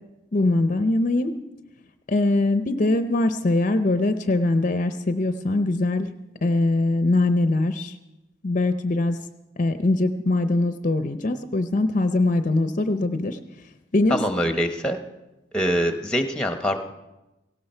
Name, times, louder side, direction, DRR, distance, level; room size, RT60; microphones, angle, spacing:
voice 1, 0.3-1.3 2.1-6.1 6.4-7.9 8.4-9.2 9.6-13.4 13.9-14.2, left 2 dB, 40° left, 9 dB, 0.6 m, -22 dB
voice 2, 14.1-15.0 15.5-16.8, equal, 5° left, 6 dB, 1.0 m, -24 dB
17.5 x 17.0 x 4.4 m, 1.0 s
head